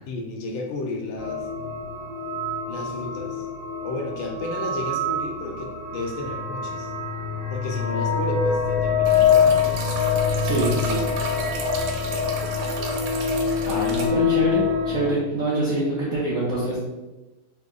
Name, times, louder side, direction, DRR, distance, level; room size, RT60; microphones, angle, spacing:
voice 1, 0.1-1.5 2.7-3.5 3.8-6.9 7.5-9.9 13.7-13.8, left 3 dB, 75° left, 1 dB, 1.3 m, -33 dB
sound 1, 1.2-15.1, left 6 dB, 40° right, 0.8 m, -25 dB
sound 2, 9.1-14.1, right 3 dB, 85° right, 1.5 m, -32 dB
voice 2, 10.4-11.0 13.6-16.8, right 2 dB, 70° right, -7 dB, 0.8 m, -25 dB
3.5 x 2.0 x 3.6 m, 1.0 s
omnidirectional pair, 2.3 m